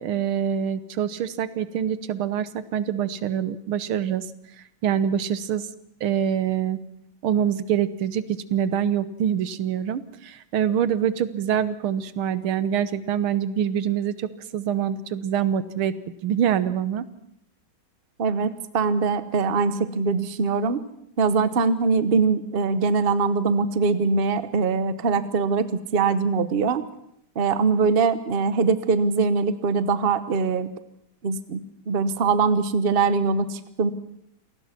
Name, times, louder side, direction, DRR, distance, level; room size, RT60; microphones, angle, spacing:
voice 1, 0.0-4.3 4.8-5.7 6.0-6.8 7.2-16.0 16.2-17.0, right 9 dB, 90° right, 14 dB, 1.9 m, -25 dB
voice 2, 18.2-20.8 21.2-26.8 27.3-30.7 31.2-33.9, right 4 dB, 40° right, 13 dB, 1.0 m, -22 dB
28.0 x 18.5 x 6.0 m, 0.73 s
omnidirectional pair, 2.3 m